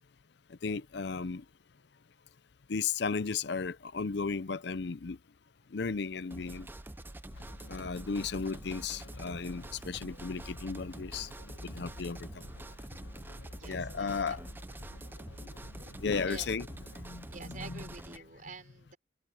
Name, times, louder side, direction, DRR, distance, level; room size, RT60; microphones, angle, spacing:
voice 1, 0.6-1.4 2.7-5.2 5.7-6.7 7.7-11.3 11.6-12.3 13.7-14.4 16.0-16.7 17.0-17.8, left 5 dB, 60° left, 0.5 m, -34 dB
sound 1, 6.3-18.2, right 1 dB, 10° right, 0.4 m, -46 dB
sound 2, 7.3-17.1, left 2 dB, 85° left, 1.0 m, -51 dB
voice 2, 13.5-14.4 16.3-16.5 17.3-19.0, right 4 dB, 40° right, 5.7 m, -48 dB
head